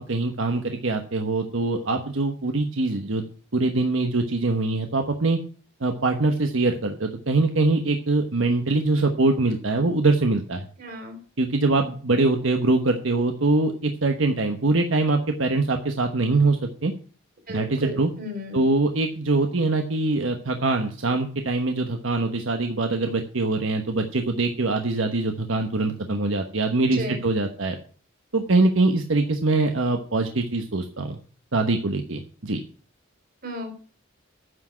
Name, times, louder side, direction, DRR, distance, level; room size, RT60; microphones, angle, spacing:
voice 1, 0.0-5.4 5.8-10.7 11.4-16.9 17.5-18.1 18.5-27.8 28.3-31.2 31.5-32.6, right 2 dB, 75° right, 5 dB, 1.1 m, -23 dB
voice 2, 10.8-11.2 17.5-18.6 27.0-27.2 33.4-33.8, equal, 50° right, 5 dB, 3.4 m, -34 dB
9.7 x 6.2 x 8.5 m, 0.42 s
head